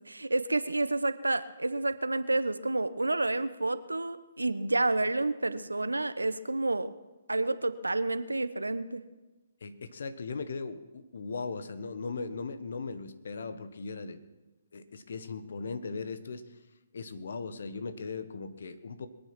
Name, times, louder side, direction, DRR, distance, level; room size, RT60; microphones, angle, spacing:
voice 1, 0.1-6.9 7.3-9.0, right 2 dB, 85° right, 13 dB, 0.9 m, -29 dB
voice 2, 9.6-14.2 14.7-16.4 16.9-19.1, left 4 dB, 60° left, 12 dB, 1.3 m, -38 dB
22.5 x 9.0 x 6.1 m, 1.1 s
figure-of-eight pair, 135°, 0 cm